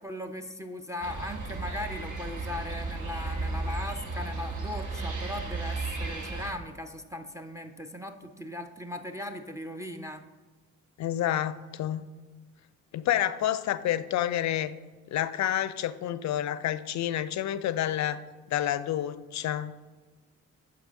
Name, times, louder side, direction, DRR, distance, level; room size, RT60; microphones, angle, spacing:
voice 1, 0.0-10.2, left 1 dB, 10° right, 8 dB, 0.5 m, -38 dB
sound 1, 1.0-6.5, right 3 dB, 50° right, 1.3 m, -34 dB
voice 2, 11.0-12.0 12.9-14.7 15.1-18.2 18.5-19.7, left 11 dB, 50° left, 14 dB, 0.5 m, -29 dB
6.6 x 4.7 x 3.9 m, 1.3 s
hypercardioid pair, 45°, 38 cm